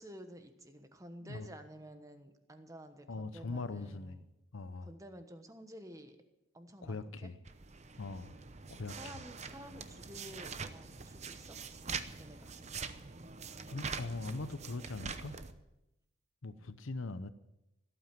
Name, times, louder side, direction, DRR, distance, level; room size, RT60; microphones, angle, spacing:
voice 1, 0.0-4.3 4.8-6.2 6.5-7.3 8.9-11.6 12.2-12.5, right 1 dB, 15° right, 1.2 m, -51 dB
voice 2, 3.1-4.2 4.5-4.9 6.8-7.3 8.0-8.4 8.7-9.1 13.7-15.4 16.4-17.3, left 3 dB, 75° left, 0.8 m, -41 dB
sound 1, 7.5-15.5, right 5 dB, 35° right, 0.8 m, -44 dB
17.0 x 8.8 x 7.6 m
head